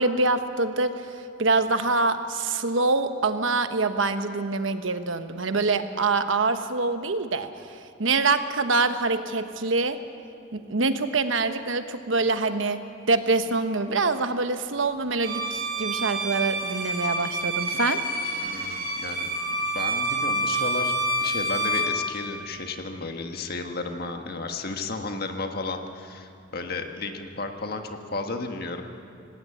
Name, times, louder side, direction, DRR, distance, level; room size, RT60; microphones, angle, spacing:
voice 1, 0.0-10.0 10.5-12.8 13.1-18.0, right 3 dB, 80° right, 9 dB, 1.2 m, -25 dB
Bowed string instrument, 15.2-22.0, right 1 dB, 55° right, 3.9 m, -28 dB
voice 2, 18.4-19.3 19.7-20.9 21.2-29.0, left 3 dB, 50° left, 5 dB, 1.6 m, -33 dB
19.0 x 17.5 x 8.7 m, 2.6 s
head